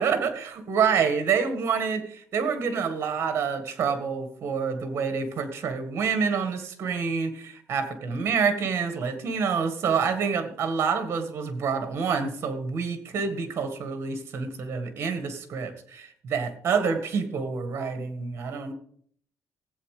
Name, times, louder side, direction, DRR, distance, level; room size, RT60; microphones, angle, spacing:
voice 1, 0.0-18.7, right 6 dB, 40° right, 9 dB, 1.7 m, -27 dB
15.5 x 8.4 x 4.9 m, 0.62 s
cardioid pair, 165°, 6 cm